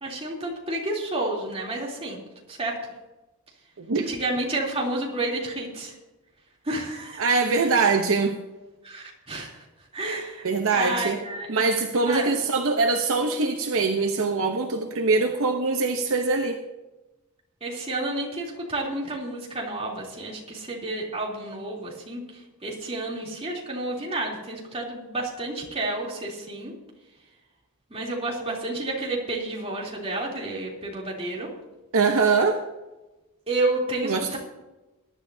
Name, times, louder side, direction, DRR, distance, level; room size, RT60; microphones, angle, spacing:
voice 1, 0.0-2.2 2.5-2.8 3.9-5.9 6.6-7.7 8.8-9.6 9.9-10.5 10.7-11.6 12.1-12.3 17.6-26.7 27.9-31.5 33.5-34.4, right 2 dB, 25° right, -3 dB, 3.3 m, -30 dB
voice 2, 3.8-4.1 7.2-8.4 10.4-11.2 11.5-16.6 31.9-32.6 34.0-34.4, right 4 dB, 65° right, 4 dB, 0.9 m, -23 dB
21.5 x 11.0 x 2.8 m, 1.1 s
head